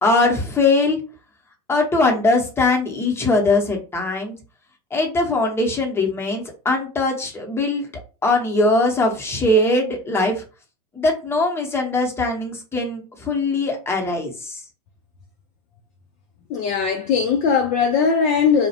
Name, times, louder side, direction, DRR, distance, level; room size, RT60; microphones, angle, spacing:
voice 1, 0.0-1.0 1.7-4.4 4.9-7.9 8.2-10.4 10.9-14.6, left 2 dB, 10° left, 0.8 m, -21 dB
voice 2, 16.5-18.7, left 6 dB, 35° left, 0.4 m, -19 dB
2.3 x 2.0 x 2.8 m
hypercardioid pair, 115°, 20 cm